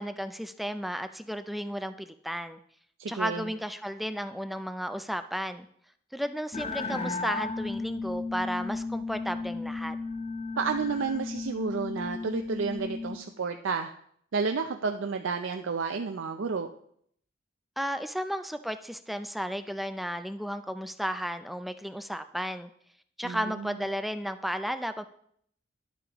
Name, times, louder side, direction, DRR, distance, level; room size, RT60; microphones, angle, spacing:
voice 1, 0.0-2.6 3.1-5.7 6.1-10.0 17.8-22.7 23.2-25.0, equal, ahead, 9 dB, 0.3 m, -33 dB
voice 2, 3.0-3.4 10.6-13.9 14.3-16.7 23.2-23.7, right 5 dB, 75° right, 5 dB, 0.5 m, -31 dB
sound 1, 6.5-13.2, left 3 dB, 30° left, 0.7 m, -34 dB
11.5 x 8.3 x 3.0 m, 0.66 s
head